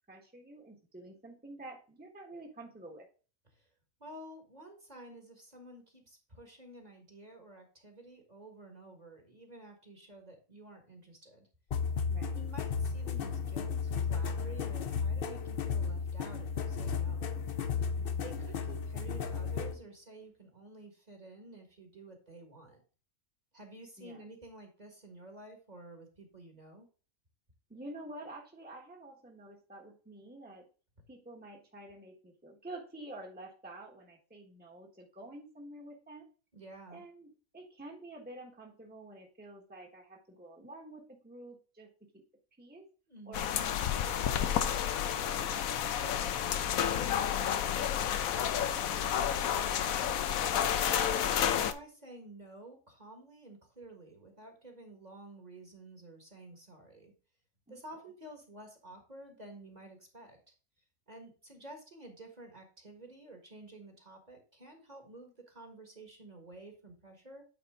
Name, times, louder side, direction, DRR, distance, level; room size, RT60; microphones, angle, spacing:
voice 1, 0.1-3.1 12.1-12.4 18.0-18.2 24.0-24.2 27.7-30.7 31.1-36.3 36.9-42.2 42.6-42.8 43.2-43.5 44.0-45.5 45.9-48.2 48.5-50.1 57.7-57.8, right 2 dB, 5° right, 0 dB, 1.3 m, -49 dB
voice 2, 4.0-11.5 12.3-17.4 18.2-22.8 23.5-26.9 36.5-37.0 43.1-43.5 50.9-57.1 57.7-60.4 61.1-67.5, right 2 dB, 30° right, 3 dB, 1.6 m, -51 dB
sound 1, 11.7-19.8, left 6 dB, 50° left, 0.8 m, -34 dB
sound 2, 43.3-51.7, left 9 dB, 85° left, 1.1 m, -30 dB
8.9 x 4.2 x 3.6 m, 0.37 s
omnidirectional pair, 1.4 m